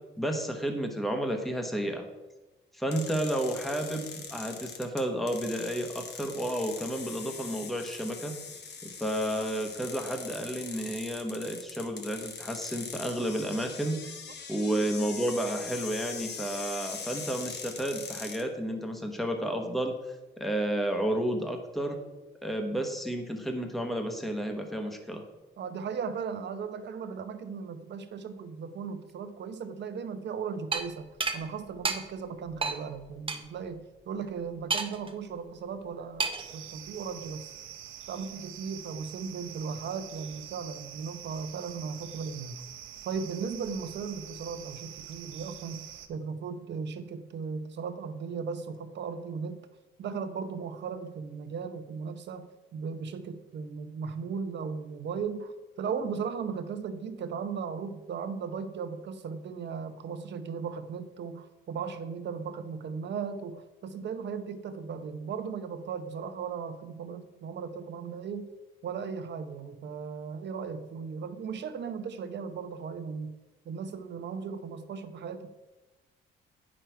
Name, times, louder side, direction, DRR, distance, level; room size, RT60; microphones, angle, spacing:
voice 1, 0.2-2.0 2.7-8.3 8.8-14.0 14.5-19.9 20.4-22.0 22.4-25.2, right 1 dB, ahead, 4 dB, 1.1 m, -31 dB
sound 1, 2.9-18.4, left 5 dB, 60° left, 1.1 m, -42 dB
voice 2, 25.6-37.5 38.1-42.6 43.0-49.7 50.0-68.5 68.8-73.4 73.6-75.5, right 6 dB, 60° right, 9 dB, 0.9 m, -37 dB
sound 2, 30.7-30.8 31.2-31.4 31.8-32.0 32.6-32.8 33.3-33.4 34.7-35.1 36.2-36.5, right 4 dB, 25° right, 0.9 m, -29 dB
sound 3, 36.4-46.1, right 10 dB, 85° right, 0.7 m, -45 dB
8.8 x 6.3 x 4.6 m, 1.1 s
cardioid pair, 90°, 20 cm